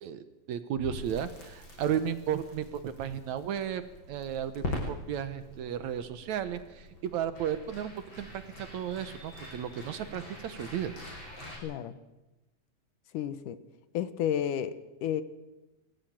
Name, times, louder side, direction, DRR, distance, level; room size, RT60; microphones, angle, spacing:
voice 1, 0.0-3.8 4.1-11.0, right 9 dB, 70° right, 11 dB, 2.1 m, -34 dB
Crackle, 0.7-11.6, left 2 dB, 35° left, 6.6 m, -43 dB
voice 2, 11.6-12.0 13.1-13.6 13.9-15.2, left 10 dB, 75° left, 12 dB, 2.5 m, -31 dB
23.0 x 15.0 x 8.9 m, 1.0 s
omnidirectional pair, 3.8 m